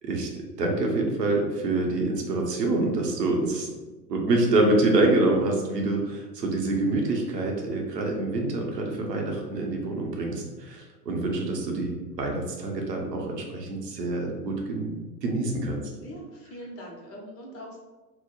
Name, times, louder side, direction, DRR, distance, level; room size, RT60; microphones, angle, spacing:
voice 1, 0.6-3.7 4.1-15.8, right 2 dB, 85° right, 0 dB, 0.8 m, -26 dB
voice 2, 16.0-17.8, equal, 30° left, -2 dB, 0.9 m, -42 dB
2.8 x 2.1 x 4.0 m, 1.2 s
hypercardioid pair, 95°, 48 cm